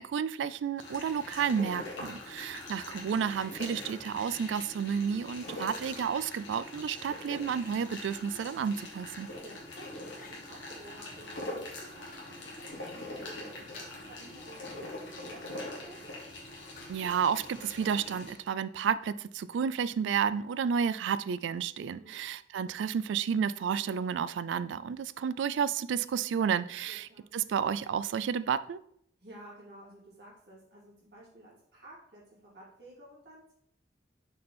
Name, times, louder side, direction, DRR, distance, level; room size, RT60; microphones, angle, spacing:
voice 1, 0.0-9.3 16.9-28.8, right 7 dB, 80° right, 17 dB, 0.3 m, -31 dB
sound 1, 0.8-18.3, left 2 dB, 80° left, 1.9 m, -43 dB
sound 2, 7.6-7.9 9.2-9.7 10.1-10.4 12.1-12.5 12.9-13.3 13.7-14.1 16.7-17.2, left 4 dB, 45° left, 0.9 m, -57 dB
voice 2, 9.4-16.0 21.9-22.2 26.9-27.3 29.2-33.5, right 1 dB, 60° right, -6 dB, 2.7 m, -53 dB
6.3 x 4.4 x 4.2 m, 0.69 s
head